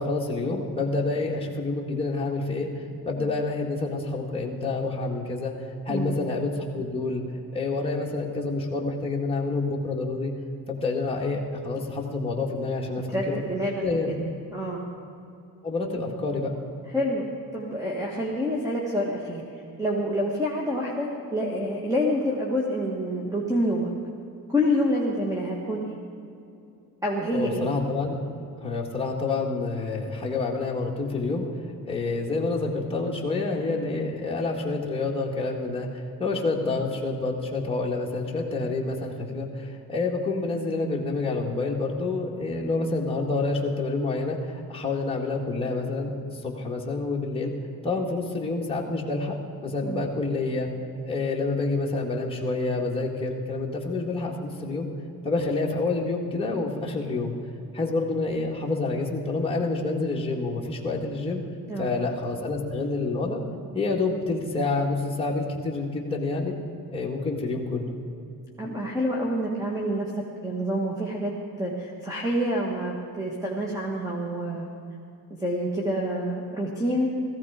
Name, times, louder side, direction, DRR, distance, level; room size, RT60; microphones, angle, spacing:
voice 1, 0.0-5.6 5.9-7.2 7.5-10.3 10.7-13.4 13.8-14.1 15.6-16.6 27.3-28.2 28.6-31.5 31.9-46.1 46.4-47.5 47.8-50.7 51.0-54.9 55.2-57.3 57.7-61.4 61.8-63.4 63.7-66.5 66.9-68.0, left 3 dB, 15° left, -2 dB, 2.0 m, -28 dB
voice 2, 5.9-6.2 13.1-14.2 14.5-14.8 16.9-17.2 17.5-19.4 19.8-23.9 24.5-26.0 27.0-27.7 49.8-50.1 61.7-61.9 68.6-71.3 71.6-74.7 75.3-77.1, equal, 10° right, -2 dB, 1.6 m, -27 dB
17.0 x 15.0 x 5.0 m, 2.7 s
cardioid pair, 140°, 36 cm